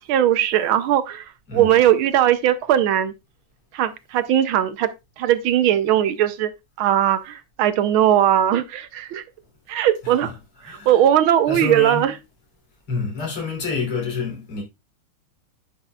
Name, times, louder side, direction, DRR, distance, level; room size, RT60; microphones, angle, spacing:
voice 1, 0.1-3.1 3.7-4.9 5.2-6.5 6.8-9.2 9.7-10.3 10.6-12.2, right 11 dB, 75° right, 1.4 m, -19 dB
voice 2, 11.5-12.0 12.9-14.6, left 4 dB, 90° left, 4.0 m, -27 dB
10.5 x 6.0 x 2.3 m
omnidirectional pair, 2.4 m